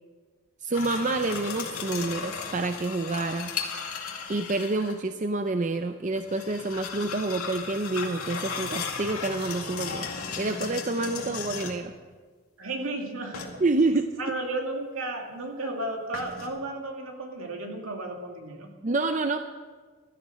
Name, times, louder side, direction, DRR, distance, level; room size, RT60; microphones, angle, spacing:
voice 1, 0.6-3.5 4.3-10.1 10.4-11.9 13.6-14.4 18.8-19.4, right 2 dB, 35° right, 8 dB, 0.5 m, -28 dB
sound 1, 0.7-5.0 6.2-11.9 13.3-13.9 16.1-16.5, left 5 dB, 80° left, 2.2 m, -36 dB
voice 2, 12.6-13.6 14.2-18.7, right 2 dB, 70° right, 2 dB, 2.5 m, -34 dB
15.5 x 12.5 x 6.3 m, 1.5 s
head